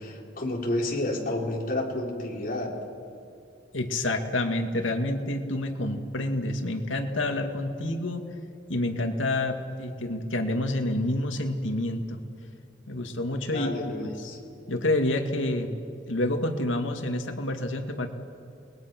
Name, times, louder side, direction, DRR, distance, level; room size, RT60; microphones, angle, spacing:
voice 1, 0.0-2.8 13.5-14.4, left 1 dB, 45° left, -2 dB, 4.2 m, -30 dB
voice 2, 3.7-8.2 8.7-12.2 12.9-13.7 14.0-14.3 14.7-15.8 16.1-18.1, left 1 dB, 85° left, 5 dB, 2.2 m, -28 dB
30.0 x 21.0 x 6.1 m, 2.6 s
head